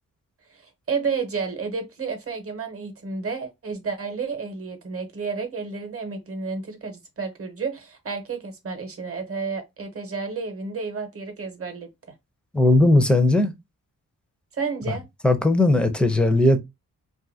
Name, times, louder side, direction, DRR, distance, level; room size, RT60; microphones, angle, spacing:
voice 1, 0.5-11.9 14.5-15.0, right 5 dB, 40° right, 0.9 m, -31 dB
voice 2, 12.5-13.5 14.9-15.0 15.2-16.6, left 2 dB, 5° left, 0.5 m, -18 dB
2.6 x 2.5 x 2.7 m
cardioid pair, 70°, 35 cm